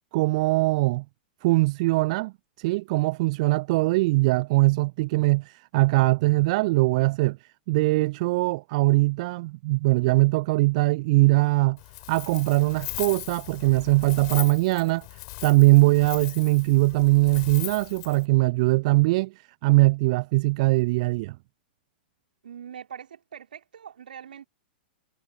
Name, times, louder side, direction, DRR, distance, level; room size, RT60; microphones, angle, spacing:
voice 1, 0.1-1.0 1.4-7.4 7.7-11.8 12.1-21.4, right 22 dB, 40° right, 0.8 m, -21 dB
Wind, 11.8-18.2, left 30 dB, 40° left, 6.3 m, -39 dB
voice 2, 22.4-24.5, right 8 dB, 60° right, 4.5 m, -42 dB
figure-of-eight pair, 105°, 5 cm